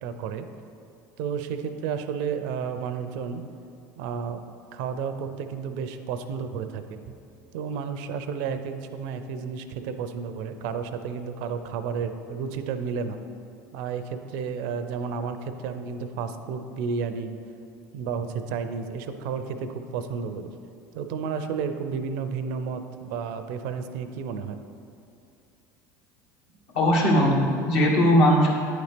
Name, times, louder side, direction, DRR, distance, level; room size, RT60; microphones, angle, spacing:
voice 1, 0.0-0.5 1.2-3.4 4.0-4.4 4.7-7.0 7.5-13.2 13.7-17.3 17.9-20.5 20.9-24.6, right 6 dB, 70° right, 9 dB, 0.4 m, -32 dB
voice 2, 26.7-28.5, equal, 65° left, -3 dB, 1.5 m, -19 dB
9.1 x 4.1 x 3.4 m, 2.6 s
hypercardioid pair, 80°, 10 cm